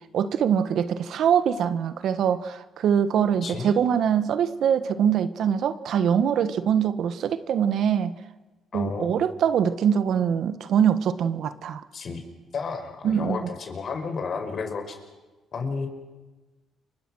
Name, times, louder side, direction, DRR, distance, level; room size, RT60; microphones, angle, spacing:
voice 1, 0.1-8.2 8.7-11.8 13.0-13.5, right 8 dB, 70° right, 12 dB, 1.4 m, -23 dB
voice 2, 8.7-9.1 11.9-12.2 12.5-15.0 15.5-15.9, left 5 dB, 50° left, 6 dB, 5.2 m, -31 dB
29.5 x 24.5 x 6.4 m, 1.2 s
cardioid pair, 90°, 0 cm